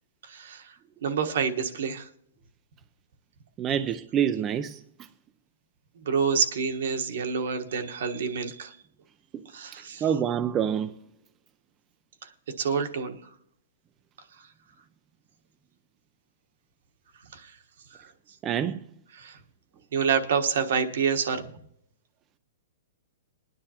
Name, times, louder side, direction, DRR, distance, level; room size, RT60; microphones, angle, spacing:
voice 1, 0.2-0.7 1.0-2.1 6.0-8.8 9.5-10.1 12.2-12.3 12.6-13.2 14.4-14.5 17.3-17.6 18.0-18.1 19.1-19.4 19.9-21.5, right 6 dB, 70° right, 1.3 m, -28 dB
voice 2, 3.6-4.8 10.0-10.9 18.4-18.8, right 9 dB, 20° right, 0.4 m, -26 dB
21.5 x 9.9 x 2.9 m
hypercardioid pair, 160°, 0 cm